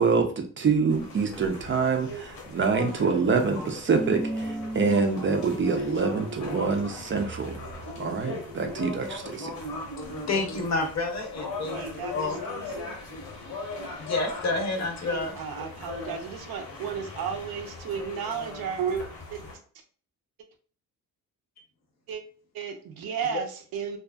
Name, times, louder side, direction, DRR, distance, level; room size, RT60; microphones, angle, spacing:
voice 1, 0.0-7.5 8.0-9.5, right 5 dB, 35° right, 5 dB, 0.4 m, -26 dB
sound 1, 0.9-19.6, left 3 dB, 85° left, 1.0 m, -39 dB
sound 2, 3.0-8.0, right 1 dB, 5° left, 0.9 m, -37 dB
voice 2, 10.3-12.4 14.0-15.4 23.3-23.4, left 3 dB, 50° left, 2 dB, 0.7 m, -29 dB
voice 3, 11.7-13.0 15.1-19.0 19.3-19.4 22.1-22.2 22.5-24.0, right 7 dB, 75° right, 4 dB, 0.6 m, -33 dB
2.6 x 2.3 x 2.3 m, 0.42 s
cardioid pair, 100°, 36 cm